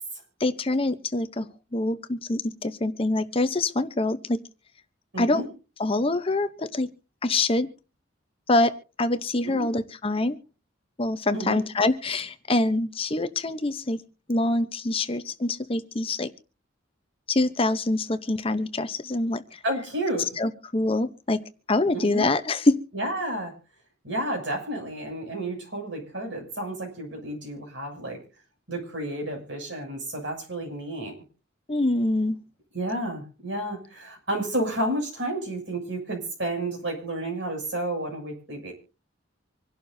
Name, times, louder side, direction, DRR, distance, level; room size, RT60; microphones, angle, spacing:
voice 1, 0.4-1.5 1.7-4.4 5.2-5.4 5.8-6.9 7.2-7.7 8.5-10.4 11.0-14.0 14.3-16.3 17.3-19.6 20.4-21.4 21.7-22.8 31.7-32.4, left 2 dB, 30° left, 11 dB, 0.7 m, -25 dB
voice 2, 5.1-5.5 9.4-9.7 11.3-11.6 19.6-20.4 21.9-22.3 22.9-23.5 24.0-28.2 28.7-31.1 32.7-38.7, right 1 dB, 70° right, 2 dB, 6.8 m, -31 dB
26.0 x 11.5 x 2.7 m, 0.34 s
head